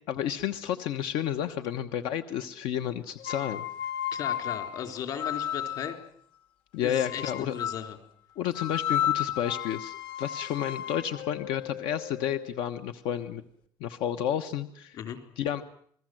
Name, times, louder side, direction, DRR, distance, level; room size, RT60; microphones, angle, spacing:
voice 1, 0.1-3.6 6.7-7.6 8.4-13.4 13.8-15.0 15.4-15.6, left 10 dB, 90° left, 9 dB, 1.2 m, -31 dB
sound 1, 3.2-6.0 6.9-7.9 8.5-12.5, left 10 dB, 70° left, 2.3 m, -33 dB
voice 2, 4.1-6.0 6.8-8.0 14.9-15.2, left 9 dB, 50° left, 8 dB, 3.7 m, -36 dB
28.5 x 20.5 x 7.8 m, 0.62 s
cardioid pair, 175°, 8 cm